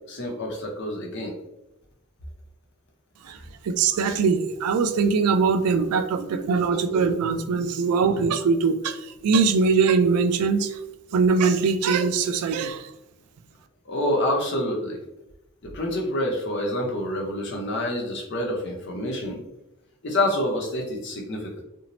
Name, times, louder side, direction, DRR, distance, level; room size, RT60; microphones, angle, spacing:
voice 1, 0.1-1.4 13.9-15.0 15.6-19.4 20.0-21.6, left 1 dB, 50° left, 0 dB, 0.6 m, -27 dB
voice 2, 3.6-10.8 11.1-12.8, right 5 dB, 90° right, 10 dB, 0.3 m, -22 dB
2.6 x 2.0 x 2.9 m, 0.90 s
head